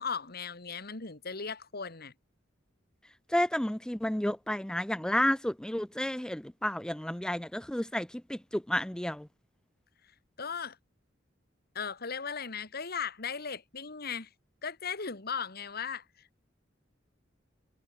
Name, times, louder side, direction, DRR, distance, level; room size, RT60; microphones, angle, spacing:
voice 1, 0.0-2.1 10.4-10.8 11.7-14.3 14.6-16.4, left 6 dB, 55° left, 2.0 m, -37 dB
voice 2, 3.3-9.3, left 1 dB, 5° left, 0.5 m, -31 dB
head